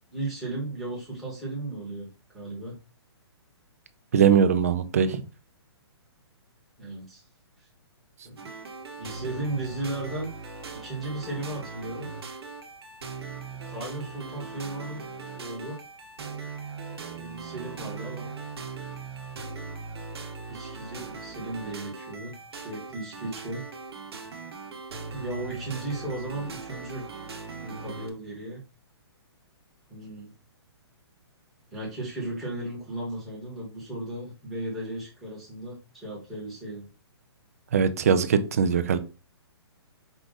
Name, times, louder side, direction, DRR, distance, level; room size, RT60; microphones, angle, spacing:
voice 1, 0.1-2.1 2.3-2.8 6.8-7.2 8.2-8.7 9.0-10.3 10.8-12.1 13.7-15.1 15.3-15.8 17.1-18.3 20.5-23.6 25.1-27.1 27.6-28.6 29.9-30.3 31.7-36.9, right 2 dB, ahead, -4 dB, 1.1 m, -35 dB
voice 2, 4.1-5.2 37.7-39.0, right 7 dB, 35° right, 10 dB, 0.4 m, -21 dB
sound 1, 8.4-28.1, right 4 dB, 65° right, 1.0 m, -40 dB
4.9 x 2.4 x 3.9 m, 0.31 s
hypercardioid pair, 175°, 14 cm